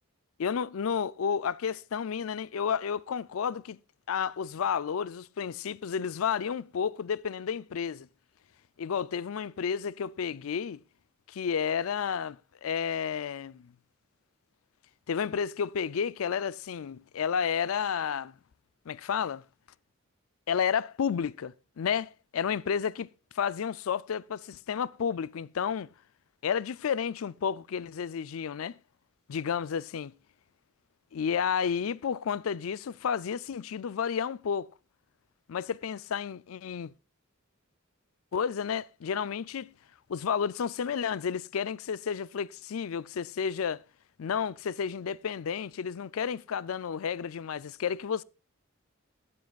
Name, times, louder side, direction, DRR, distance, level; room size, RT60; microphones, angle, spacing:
voice 1, 0.4-3.8 4.1-8.1 8.8-10.8 11.3-13.7 15.1-18.3 18.9-19.4 20.5-23.1 23.3-25.9 26.4-28.8 29.3-30.1 31.1-34.7 35.5-36.9 38.3-39.7 40.1-43.8 44.2-48.2, left 7 dB, 80° left, 0.4 m, -31 dB
21.5 x 7.6 x 2.4 m
head